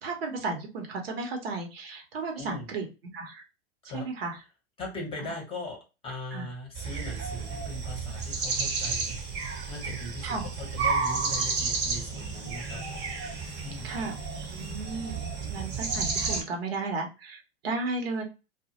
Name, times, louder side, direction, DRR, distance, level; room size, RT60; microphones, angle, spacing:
voice 1, 0.0-2.9 3.1-3.4 3.8-4.4 6.3-6.5 10.2-10.5 13.8-14.2 14.5-15.2 15.5-18.2, right 3 dB, 60° right, 3 dB, 0.8 m, -34 dB
voice 2, 2.4-2.7 3.9-4.1 4.8-9.2 9.7-13.1 13.6-14.0, left 2 dB, 15° left, 0 dB, 0.8 m, -40 dB
sound 1, 6.8-16.4, right 4 dB, 30° right, 0.8 m, -32 dB
2.2 x 2.1 x 2.8 m, 0.29 s
hypercardioid pair, 105°, 33 cm